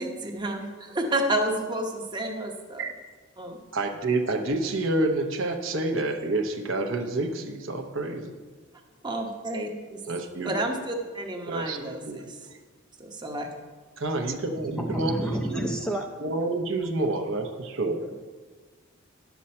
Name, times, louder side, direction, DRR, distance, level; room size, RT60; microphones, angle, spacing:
voice 1, 0.0-2.8 3.4-3.6 9.0-10.0 10.4-12.4 13.0-13.5, right 1 dB, 20° right, 2 dB, 0.9 m, -30 dB
voice 2, 3.7-8.3 10.1-10.6 11.5-12.2 12.5-12.6 14.0-15.7 16.2-18.0, right 2 dB, 60° right, 4 dB, 0.8 m, -28 dB
voice 3, 14.6-16.1, right 1 dB, 5° left, 2 dB, 0.5 m, -30 dB
10.5 x 7.1 x 4.3 m, 1.4 s
head